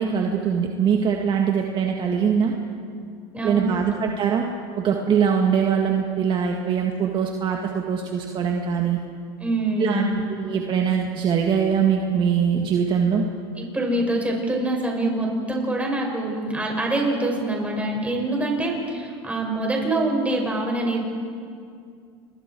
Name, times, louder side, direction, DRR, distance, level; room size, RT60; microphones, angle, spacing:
voice 1, 0.0-2.5 3.4-4.5 4.8-9.0 9.8-10.0 10.4-13.2, right 7 dB, 40° right, 1 dB, 2.0 m, -22 dB
voice 2, 3.3-3.9 9.4-10.3 13.6-21.0, right 2 dB, 10° right, 0 dB, 6.5 m, -25 dB
28.5 x 22.0 x 4.7 m, 2.3 s
supercardioid pair, 100°, 13 cm